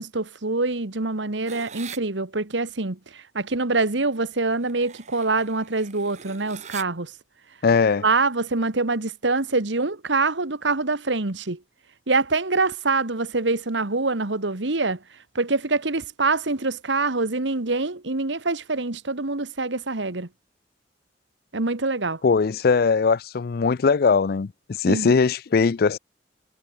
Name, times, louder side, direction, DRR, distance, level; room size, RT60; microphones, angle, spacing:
voice 1, 0.0-7.1 8.0-11.6 12.1-15.0 15.3-20.3 21.5-22.2 24.9-25.1, right 3 dB, 80° right, 1.7 m, -25 dB
sound 1, 1.5-2.0 4.6-6.8, right 8 dB, 40° right, 1.4 m, -42 dB
voice 2, 7.6-8.0 22.2-26.0, left 5 dB, 55° left, 0.4 m, -20 dB
head